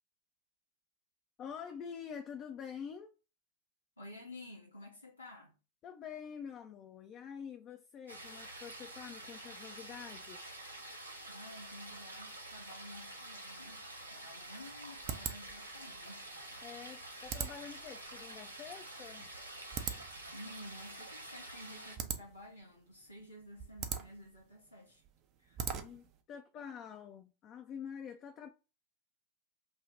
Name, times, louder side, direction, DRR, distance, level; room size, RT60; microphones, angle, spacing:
voice 1, 1.4-3.1 5.8-10.4 16.6-19.3 25.8-28.5, left 7 dB, 30° left, 0.3 m, -47 dB
voice 2, 4.0-5.5 11.3-13.8 14.1-16.3 20.3-25.0 25.4-25.7, left 1 dB, 85° left, 0.7 m, -52 dB
sound 1, 8.1-22.0, right 1 dB, 85° right, 0.7 m, -48 dB
sound 2, 14.0-26.2, right 7 dB, 35° right, 0.4 m, -44 dB
2.6 x 2.0 x 3.1 m
figure-of-eight pair, 90°, 0 cm